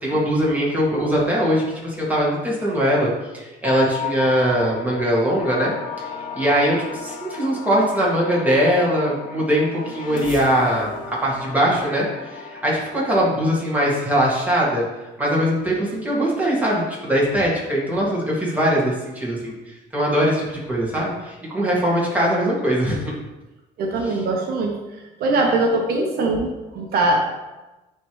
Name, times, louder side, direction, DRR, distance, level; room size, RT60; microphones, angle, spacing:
voice 1, 0.0-5.7 6.0-6.1 6.4-10.9 11.2-14.8 15.2-19.5 19.9-23.1 24.0-24.2, equal, 10° right, -5 dB, 2.0 m, -21 dB
Bell, 3.6-7.3, left 7 dB, 90° left, 1.1 m, -34 dB
sound 1, 5.4-13.5, left 5 dB, 55° left, 1.1 m, -36 dB
voice 2, 23.8-24.7 25.2-27.2, right 2 dB, 65° right, 1 dB, 0.9 m, -21 dB
9.8 x 3.3 x 3.1 m, 1.1 s
cardioid pair, 110°, 17 cm